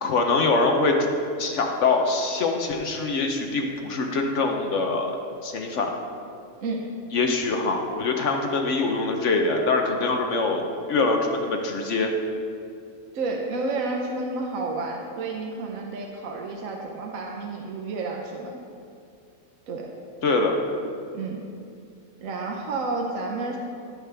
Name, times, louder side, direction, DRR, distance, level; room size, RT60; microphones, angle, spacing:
voice 1, 0.0-0.9 1.4-5.1 5.4-5.9 7.1-10.6 10.9-12.1 20.2-20.6, left 3 dB, 60° left, 3 dB, 1.0 m, -24 dB
voice 2, 13.1-18.6 19.7-19.9 21.1-21.4 22.2-23.6, right 3 dB, 65° right, 0 dB, 1.1 m, -30 dB
15.5 x 5.3 x 3.4 m, 2.5 s
omnidirectional pair, 1.6 m